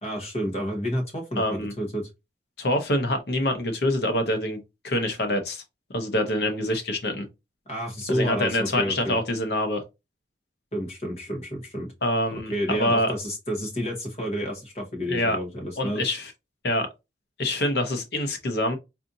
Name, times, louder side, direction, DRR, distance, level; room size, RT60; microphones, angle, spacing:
voice 1, 0.0-2.1 7.7-9.2 10.7-11.9 12.3-16.0, equal, 35° left, 1.1 m, -30 dB
voice 2, 1.4-1.7 2.6-4.6 4.8-5.6 5.9-7.2 8.1-9.8 12.0-13.1 15.1-15.4 15.8-16.3 16.6-16.9 17.4-18.8, left 1 dB, 65° left, 0.8 m, -25 dB
4.1 x 2.6 x 2.6 m
head